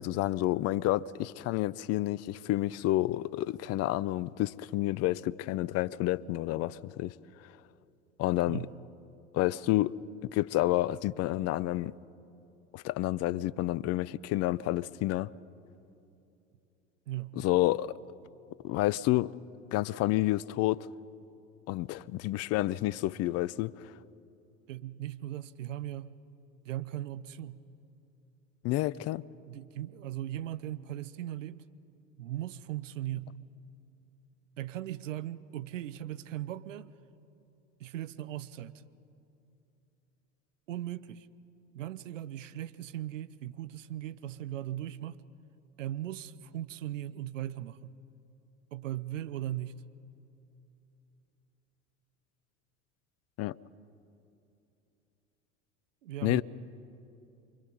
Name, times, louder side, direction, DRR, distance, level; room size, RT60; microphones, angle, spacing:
voice 1, 0.0-7.1 8.2-8.6 9.3-10.0 10.3-11.9 12.7-15.3 17.4-17.9 18.6-19.3 19.7-20.9 21.7-23.8 28.6-29.2 53.4-53.6 56.2-56.4, left 16 dB, 40° left, 0.6 m, -29 dB
voice 2, 17.1-17.4 24.7-26.2 26.6-27.6 29.4-31.6 32.2-33.3 34.6-36.9 37.8-38.8 40.7-41.3 41.7-45.2 45.8-47.9 48.7-49.8 56.0-56.4, right 13 dB, 75° right, 0.8 m, -38 dB
28.5 x 23.5 x 5.5 m
hypercardioid pair, 75°, 38 cm